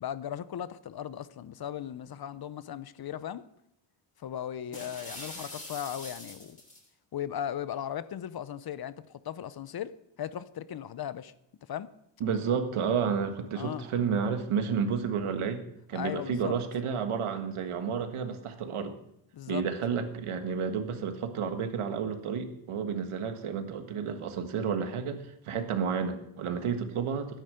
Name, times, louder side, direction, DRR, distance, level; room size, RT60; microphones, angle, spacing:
voice 1, 0.0-3.5 4.2-6.6 7.1-11.3 11.7-11.9 13.5-13.9 15.9-16.5 19.3-19.6, left 10 dB, 50° left, 15 dB, 0.7 m, -37 dB
sound 1, 4.7-6.9, left 1 dB, 15° left, 2.9 m, -43 dB
voice 2, 12.2-19.0 19.5-27.4, right 6 dB, 85° right, 7 dB, 1.7 m, -31 dB
13.0 x 10.0 x 6.5 m, 0.79 s
wide cardioid pair, 155°, 49 cm